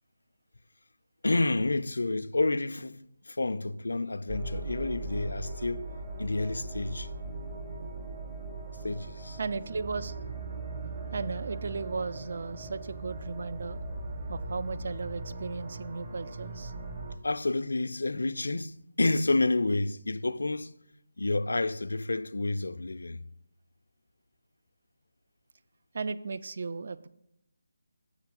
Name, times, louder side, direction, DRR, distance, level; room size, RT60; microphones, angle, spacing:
voice 1, 1.2-3.0 3.3-5.9 6.2-7.1 8.8-9.4 17.2-20.7 21.2-23.2, left 2 dB, 75° left, 0.3 m, -29 dB
sound 1, 4.3-17.2, right 3 dB, 30° right, 0.8 m, -39 dB
voice 2, 9.4-10.1 11.1-13.8 14.3-16.7 25.9-27.1, right 4 dB, 50° right, 0.3 m, -35 dB
7.1 x 6.6 x 3.7 m
figure-of-eight pair, 155°, 0 cm